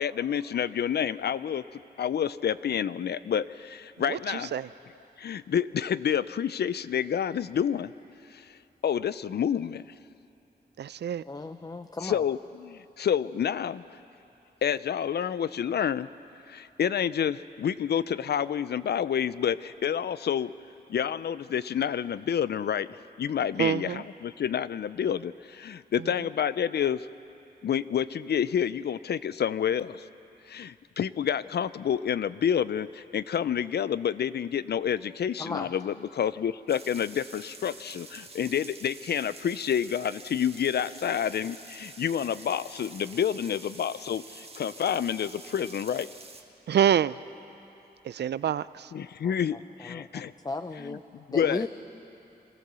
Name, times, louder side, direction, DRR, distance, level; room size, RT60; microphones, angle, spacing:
voice 1, 0.0-4.6 5.2-7.9 8.3-8.6 8.8-9.8 12.0-13.8 14.6-16.1 16.5-20.5 20.9-27.1 27.6-30.1 30.5-46.1 48.9-50.3 50.8-51.7, left 8 dB, 75° left, 16 dB, 0.4 m, -29 dB
voice 2, 4.0-4.7 10.8-11.2 23.6-24.0 26.0-26.1 46.7-47.2 48.0-48.9, right 9 dB, 80° right, 17 dB, 0.4 m, -27 dB
voice 3, 11.3-12.2 35.4-35.7 49.2-49.3 49.9-50.1 50.4-51.0 51.3-51.7, left 3 dB, 20° left, 8 dB, 0.5 m, -34 dB
sound 1, 36.7-46.4, right 3 dB, 35° right, 1.4 m, -47 dB
24.0 x 16.0 x 6.8 m, 2.9 s
wide cardioid pair, 115°, 17 cm